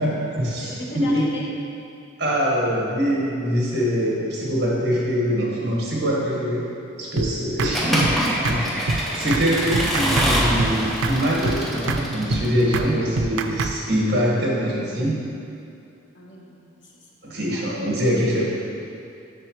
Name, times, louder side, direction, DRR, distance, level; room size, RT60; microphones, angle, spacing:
voice 1, 0.0-1.2 2.2-6.7 7.0-8.1 8.4-15.2 17.2-18.5, equal, 55° right, -5 dB, 1.7 m, -23 dB
voice 2, 0.6-1.5 16.1-17.7, left 1 dB, 70° left, -4 dB, 1.2 m, -38 dB
sound 1, 7.2-7.3 7.6-7.7 8.0-8.2 8.4-8.6 8.9-9.0 9.3-9.5 9.7-10.3 10.6-10.7 11.0-11.2 11.4-11.6 11.9-12.0 12.3-12.4 12.7-12.9 13.2-13.7, right 3 dB, 85° right, 0.4 m, -24 dB
Accelerating revving vroom / Mechanisms, 7.7-12.6, equal, ahead, 0.6 m, -25 dB
7.7 x 6.2 x 3.2 m, 2.6 s
head